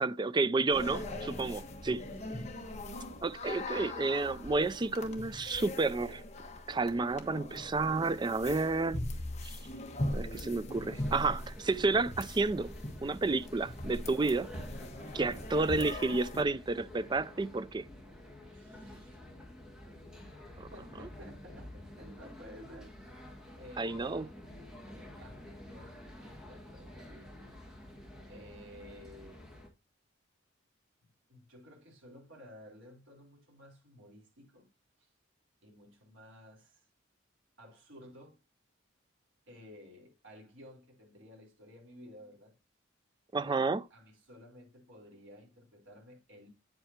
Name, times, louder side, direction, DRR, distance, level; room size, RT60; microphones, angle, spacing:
voice 1, 0.0-2.0 3.2-6.2 6.7-9.0 9.4-9.6 10.1-12.7 13.0-14.5 15.1-17.8 20.6-20.7 23.8-24.2 43.3-43.8, right 3 dB, 20° right, 0.3 m, -31 dB
sound 1, 0.7-16.4, left 1 dB, 35° left, 1.4 m, -41 dB
voice 2, 1.4-2.6 10.3-10.5 18.4-19.2 20.5-22.9 23.5-24.3 24.9-27.4 28.3-29.5 31.0-34.7 35.0-35.1 35.6-36.9 37.6-38.4 39.5-42.5 43.4-46.5, equal, 70° right, 4.1 m, -54 dB
sound 2, 10.7-29.7, left 1 dB, 5° right, 2.0 m, -50 dB
9.0 x 7.9 x 2.8 m
head